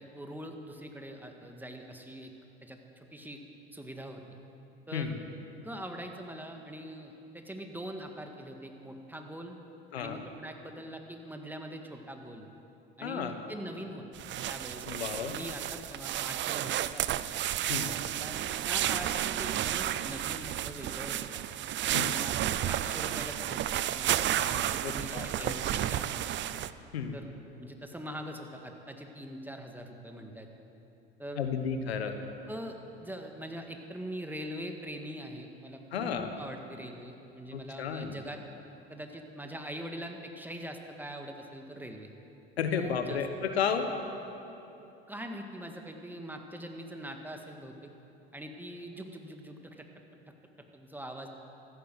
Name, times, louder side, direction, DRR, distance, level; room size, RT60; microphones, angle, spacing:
voice 1, 0.0-2.3 2.6-3.4 3.7-4.2 4.9-5.2 5.6-9.6 10.0-12.5 13.0-14.0 14.5-14.9 15.1-17.3 17.7-18.4 18.7-21.4 21.8-26.3 27.1-27.3 27.6-30.5 31.2-31.5 32.5-38.4 38.9-42.1 42.8-43.2 45.1-47.9 48.3-49.9 50.7-51.3, equal, 5° right, 3 dB, 1.8 m, -43 dB
voice 2, 13.0-13.3 14.9-15.4 17.7-17.9 21.9-22.1 24.8-25.5 26.9-27.1 31.4-32.2 35.9-36.3 37.5-38.1 42.6-43.9, left 7 dB, 85° left, 7 dB, 1.2 m, -32 dB
sound 1, 14.1-26.7, right 12 dB, 40° right, 0.6 m, -32 dB
14.5 x 12.0 x 7.9 m, 2.9 s
hypercardioid pair, 75°, 31 cm